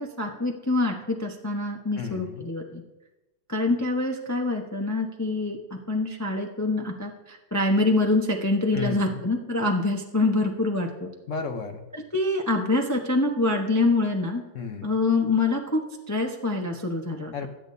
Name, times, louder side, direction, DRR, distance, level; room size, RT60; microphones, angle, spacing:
voice 1, 0.0-2.8 3.5-5.6 5.9-11.1 12.1-14.4 14.8-15.8 16.1-17.3, left 2 dB, 20° left, 1 dB, 0.5 m, -25 dB
voice 2, 2.0-2.4 8.7-9.2 11.3-11.8 14.5-14.9 17.3-17.5, left 5 dB, 55° left, 6 dB, 1.0 m, -32 dB
19.5 x 8.6 x 2.7 m, 1.0 s
omnidirectional pair, 2.0 m